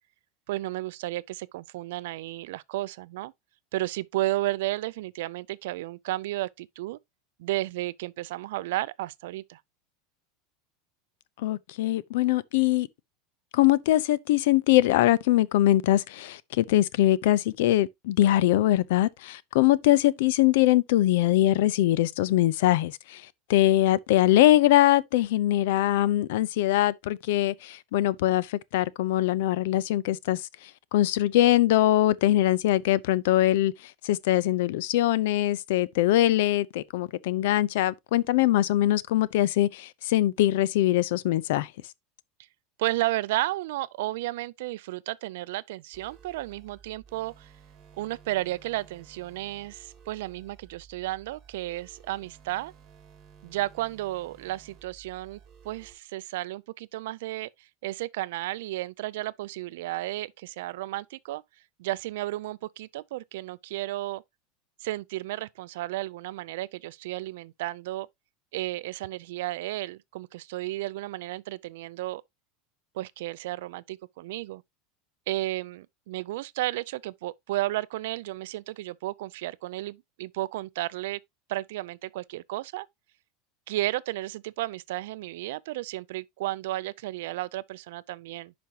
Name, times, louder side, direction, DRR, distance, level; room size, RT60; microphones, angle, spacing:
voice 1, 0.5-3.3 3.7-7.0 7.4-9.6 42.8-47.5 48.0-52.7 53.4-55.4 55.6-61.4 61.8-64.2 64.8-68.1 68.5-72.2 72.9-74.6 75.3-81.2 81.5-82.9 83.7-88.5, right 17 dB, 70° right, 0.4 m, -33 dB
voice 2, 11.4-12.9 13.5-23.2 23.5-30.4 30.9-33.7 34.0-41.7, left 14 dB, 65° left, 0.5 m, -22 dB
sound 1, 45.9-55.9, right 7 dB, 30° right, 2.5 m, -54 dB
10.5 x 5.2 x 2.9 m
supercardioid pair, 175°, 0 cm